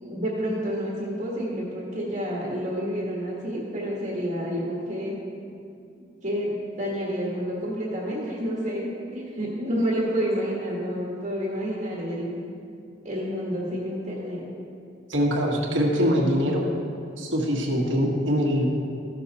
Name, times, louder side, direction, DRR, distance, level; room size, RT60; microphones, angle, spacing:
voice 1, 0.0-5.2 6.2-12.3 13.0-14.4, equal, 40° right, -4 dB, 1.4 m, -29 dB
voice 2, 15.1-16.7 17.2-18.7, equal, 85° right, -1 dB, 1.6 m, -23 dB
14.0 x 6.1 x 4.1 m, 2.5 s
head